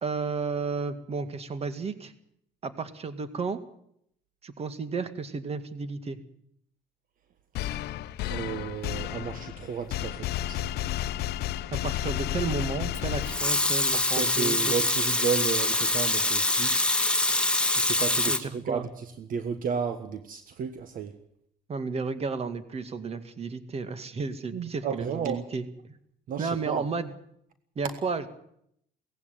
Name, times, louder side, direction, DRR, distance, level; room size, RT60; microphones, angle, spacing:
voice 1, 0.0-2.1 2.6-3.6 4.4-6.2 11.7-14.8 18.3-18.9 21.7-26.0 26.4-27.1 27.8-28.3, right 4 dB, 35° right, 11 dB, 2.1 m, -33 dB
sound 1, 7.5-13.9, left 13 dB, 75° left, 0.8 m, -32 dB
voice 2, 8.3-10.7 13.9-16.8 17.8-21.1 24.5-25.4 26.3-26.8, right 6 dB, 55° right, 9 dB, 1.4 m, -33 dB
Water tap faucet / Sink (filling or washing) / Liquid, 12.9-18.4, left 2 dB, 5° left, 1.9 m, -25 dB
18.0 x 16.0 x 9.3 m, 0.71 s
cardioid pair, 110°, 17 cm